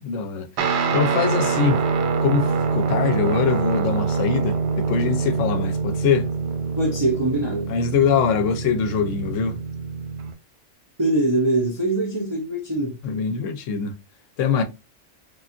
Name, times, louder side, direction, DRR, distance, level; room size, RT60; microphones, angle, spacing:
voice 1, 0.0-0.5 0.9-1.8 2.2-6.3 7.7-9.5 13.0-13.9 14.4-14.6, left 6 dB, 80° left, 0.9 m, -23 dB
Guitar, 0.6-10.3, right 5 dB, 65° right, 0.8 m, -25 dB
voice 2, 6.8-7.7 11.0-12.9, right 2 dB, 30° right, 0.5 m, -22 dB
3.3 x 2.3 x 2.4 m
omnidirectional pair, 1.3 m